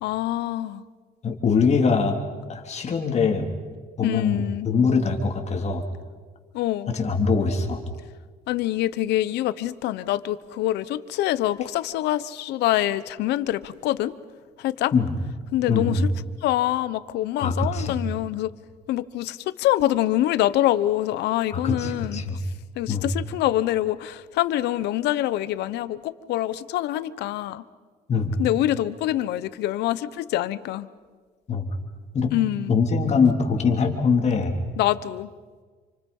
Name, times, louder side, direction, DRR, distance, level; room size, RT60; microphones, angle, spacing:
voice 1, 0.0-0.8 4.0-4.7 6.5-6.9 8.5-14.1 14.6-14.9 15.5-16.1 16.4-18.5 18.9-22.2 22.8-27.6 28.4-30.9 32.3-32.7 34.8-35.3, left 14 dB, 80° left, 15 dB, 1.0 m, -25 dB
voice 2, 1.2-2.2 2.5-3.5 4.0-5.8 6.9-7.8 14.9-15.1 15.7-16.1 17.4-18.0 21.5-22.4 22.9-23.1 28.1-28.3 31.5-31.7 32.1-32.3 32.7-34.6, left 5 dB, 40° left, 3 dB, 3.4 m, -23 dB
28.5 x 25.5 x 5.5 m, 1.5 s
cardioid pair, 110°, 17 cm